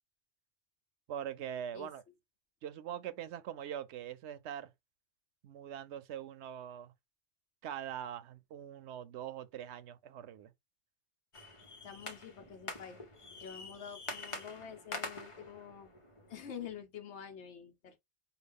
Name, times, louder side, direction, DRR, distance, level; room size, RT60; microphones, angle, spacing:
voice 1, 1.1-2.0 2.6-4.7 5.4-6.9 7.6-10.5, right 10 dB, 90° right, 0.9 m, -42 dB
sound 1, 11.3-16.8, left 2 dB, 30° left, 0.8 m, -46 dB
voice 2, 11.8-13.0 13.3-15.9 16.3-18.0, left 8 dB, 85° left, 1.0 m, -47 dB
4.8 x 2.3 x 3.5 m
omnidirectional pair, 1.1 m